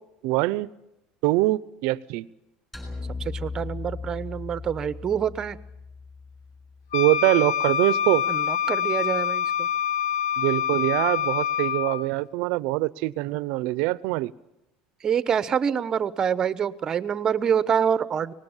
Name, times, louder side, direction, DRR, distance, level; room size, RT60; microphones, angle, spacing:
voice 1, 0.2-0.7 1.2-2.3 6.9-8.2 10.4-14.3, right 19 dB, 70° right, 18 dB, 0.7 m, -23 dB
sound 1, 2.7-7.1, left 4 dB, 5° left, 7.2 m, -37 dB
voice 2, 3.2-5.6 8.3-9.7 15.0-18.3, right 8 dB, 30° right, 14 dB, 1.0 m, -26 dB
Wind instrument woodwind instrument, 6.9-12.1, left 9 dB, 80° left, 1.3 m, -26 dB
24.5 x 19.5 x 7.3 m, 0.87 s
cardioid pair, 135°, 2 cm